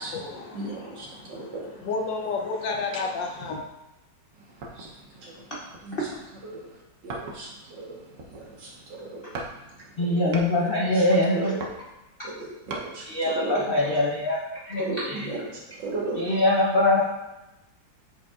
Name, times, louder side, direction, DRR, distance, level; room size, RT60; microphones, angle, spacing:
voice 1, 0.0-1.5 1.9-3.6, left 4 dB, 75° left, 1 dB, 1.5 m, -31 dB
voice 2, 0.5-1.9 4.3-5.5 5.8-6.1 6.4-11.1 11.4-11.6 12.2-13.6 14.8-16.3, right 2 dB, 80° right, -3 dB, 2.0 m, -37 dB
sound 1, 4.6-5.0 5.7-6.3 7.1-7.6 8.0-8.7 9.3-9.6 9.9-10.6 11.3-12.9 13.4-13.5, right 2 dB, 55° right, 1.0 m, -38 dB
voice 3, 10.0-11.5 13.1-15.2 16.2-17.0, left 1 dB, 55° left, -5 dB, 0.6 m, -23 dB
8.1 x 4.9 x 2.4 m, 0.98 s
omnidirectional pair, 2.0 m